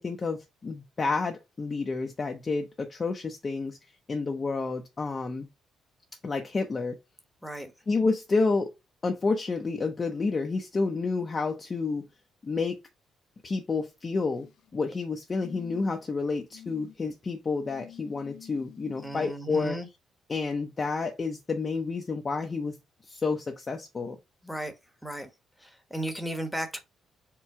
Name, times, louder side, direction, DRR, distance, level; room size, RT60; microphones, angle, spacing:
voice 1, 0.0-3.8 4.1-5.5 6.2-7.0 7.9-8.7 9.0-12.1 12.4-12.8 13.4-14.5 14.7-19.8 20.3-22.8 23.1-24.2, left 4 dB, 35° left, 0.7 m, -29 dB
sound 1, 14.1-14.7 15.4-16.1 16.5-17.0 17.7-19.3 20.5-20.6, left 12 dB, 85° left, 0.7 m, -49 dB
voice 2, 19.0-19.9 24.4-24.7 25.0-25.3 25.6-26.8, right 1 dB, ahead, 1.1 m, -35 dB
4.5 x 2.3 x 4.7 m
cardioid pair, 90°, 0 cm